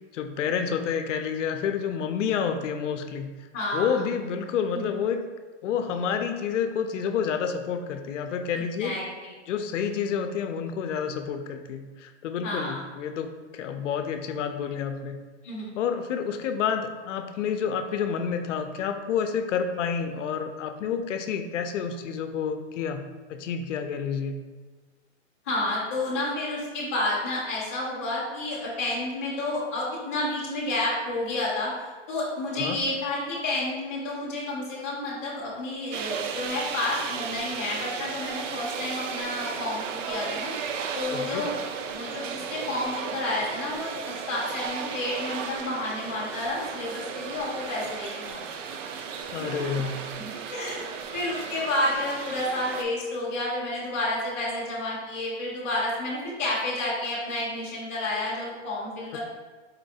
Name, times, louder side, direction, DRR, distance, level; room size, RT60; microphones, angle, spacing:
voice 1, 0.1-3.3 3.7-5.2 5.6-9.0 9.5-15.2 15.8-23.0 23.3-24.3 32.6-32.8 41.1-41.5 49.3-50.1, left 7 dB, 75° left, 7 dB, 0.5 m, -29 dB
voice 2, 3.5-4.0 4.7-4.9 8.6-9.3 12.4-12.8 15.4-15.8 25.5-31.7 32.1-40.5 40.9-41.6 41.9-48.7 49.5-49.6 50.2-50.9 51.1-59.2, left 2 dB, 15° left, -10 dB, 0.4 m, -30 dB
sound 1, 35.9-52.8, right 6 dB, 80° right, 0.5 m, -35 dB
4.2 x 3.0 x 2.7 m, 1.4 s
hypercardioid pair, 170°, 37 cm